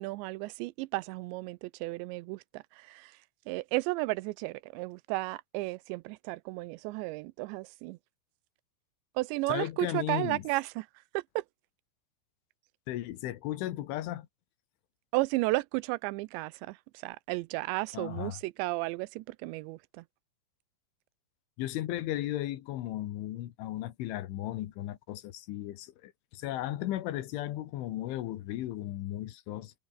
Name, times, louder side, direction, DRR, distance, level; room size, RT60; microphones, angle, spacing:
voice 1, 0.0-3.2 3.5-8.0 9.2-10.9 11.1-11.4 15.1-16.8 17.0-20.0, right 22 dB, 80° right, 2.7 m, -33 dB
voice 2, 9.5-10.4 12.9-14.3 17.9-18.4 21.6-29.7, left 14 dB, 85° left, 4.0 m, -35 dB
omnidirectional pair, 5.4 m